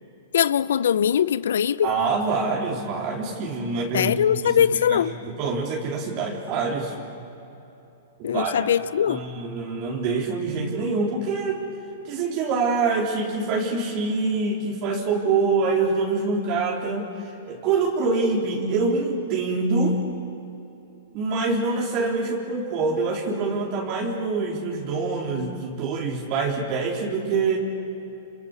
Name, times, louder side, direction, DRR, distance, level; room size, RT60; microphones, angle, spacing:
voice 1, 0.3-1.9 3.9-5.1 8.2-9.3, left 9 dB, 75° left, 17 dB, 0.7 m, -21 dB
voice 2, 1.8-4.1 4.4-6.9 8.2-8.6 9.1-11.6 12.0-20.0 21.1-27.6, right 4 dB, 45° right, -1 dB, 4.0 m, -25 dB
27.5 x 27.0 x 6.9 m, 2.9 s
hypercardioid pair, 115°, 0 cm